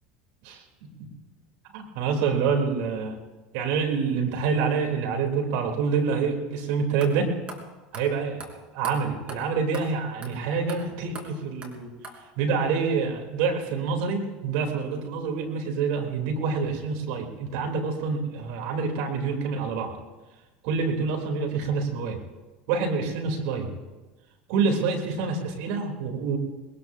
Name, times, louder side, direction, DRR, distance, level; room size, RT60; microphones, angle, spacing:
voice 1, 1.7-3.2 3.5-7.3 7.9-8.4 8.7-11.9 12.4-19.9 20.6-22.2 22.7-23.7 24.5-26.4, right 5 dB, 65° right, 2 dB, 3.3 m, -27 dB
sound 1, 6.6-6.7 7.0-7.1 7.5-7.6 7.9-8.1 8.4-8.5 8.8-8.9 9.3-9.4 9.7-9.9 10.2-10.3 10.7-10.8 11.2-11.3 11.6-11.7 12.0-12.2, right 2 dB, 30° right, 3.9 m, -39 dB
21.0 x 20.0 x 2.7 m, 1.2 s
hypercardioid pair, 85°, 4 cm